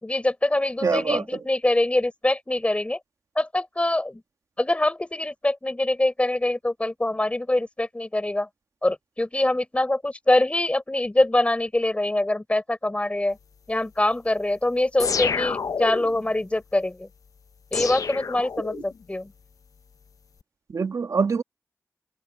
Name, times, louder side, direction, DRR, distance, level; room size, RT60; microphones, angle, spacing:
voice 1, 0.0-3.0 3.4-4.2 4.6-8.5 8.8-13.4 13.7-17.1 17.7-19.3, left 1 dB, 20° left, 4.0 m, -24 dB
voice 2, 0.8-1.4 20.7-21.4, right 5 dB, 75° right, 2.0 m, -24 dB
sound 1, 15.0-16.2 17.7-19.0, left 6 dB, 80° left, 0.7 m, -28 dB
wide cardioid pair, 75°, 6 cm